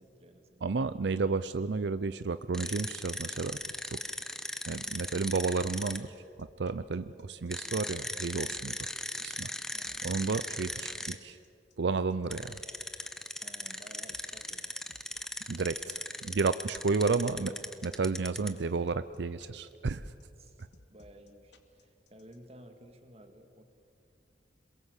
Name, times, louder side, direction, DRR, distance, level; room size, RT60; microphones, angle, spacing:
voice 1, 0.0-0.6 9.7-10.0 13.4-14.7 20.4-23.6, right 1 dB, 35° right, 6 dB, 2.2 m, -54 dB
voice 2, 0.6-3.6 4.7-8.9 9.2-9.5 10.0-11.4 11.8-12.6 15.5-17.5 17.8-20.1, right 4 dB, 70° right, 13 dB, 0.5 m, -32 dB
sound 1, 2.5-6.0 7.5-11.1 12.3-18.6, left 1 dB, 5° left, 1.0 m, -38 dB
sound 2, 6.1-22.4, left 2 dB, 80° left, 2.2 m, -59 dB
27.0 x 22.0 x 8.2 m, 2.6 s
head